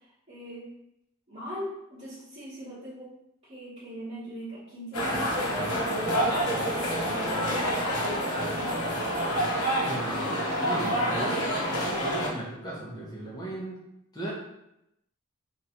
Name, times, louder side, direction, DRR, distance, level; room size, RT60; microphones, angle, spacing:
voice 1, 0.3-0.7 1.3-3.1 3.4-5.8 6.2-8.9, equal, 30° right, -13 dB, 1.3 m, -41 dB
sound 1, 4.9-12.3, equal, 85° left, 1.0 m, -27 dB
voice 2, 9.8-13.8 14.1-14.3, right 1 dB, 20° left, -6 dB, 1.1 m, -37 dB
3.2 x 2.7 x 4.3 m, 0.83 s
head